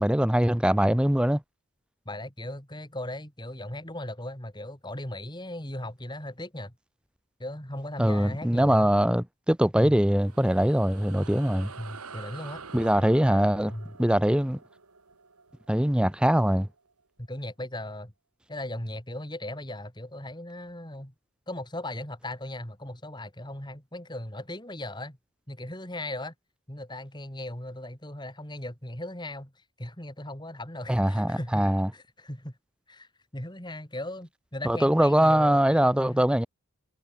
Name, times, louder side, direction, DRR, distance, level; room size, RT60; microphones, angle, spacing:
voice 1, 0.0-1.4 8.0-11.7 12.7-13.7 14.0-14.6 15.7-16.7 30.9-31.9 34.6-36.5, equal, 5° right, 0.6 m, -22 dB
voice 2, 2.0-6.7 7.4-8.9 9.8-10.0 11.8-12.7 13.2-13.9 17.2-18.1 18.5-21.1 21.5-25.2 25.5-26.3 26.7-32.6 32.9-36.2, left 1 dB, 20° left, 3.3 m, -38 dB
sound 1, 10.0-16.8, right 4 dB, 90° right, 2.7 m, -47 dB
head